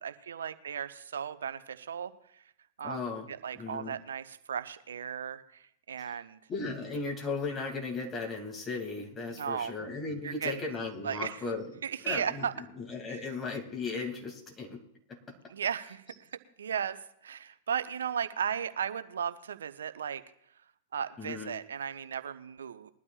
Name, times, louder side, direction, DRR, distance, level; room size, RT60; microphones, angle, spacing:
voice 1, 0.0-2.1 2.8-3.0 3.3-6.4 9.3-9.7 10.2-10.5 11.0-11.4 11.8-12.5 13.1-13.2 15.5-16.0 16.6-17.0 17.2-20.2 20.9-22.9, right 8 dB, 75° right, 11 dB, 0.7 m, -35 dB
voice 2, 2.8-3.3 3.5-4.0 6.0-6.2 6.5-11.8 12.0-14.8 15.1-15.2 21.2-21.5, left 3 dB, 25° left, 1 dB, 2.5 m, -36 dB
21.5 x 12.0 x 2.4 m, 0.72 s
figure-of-eight pair, 100°, 0 cm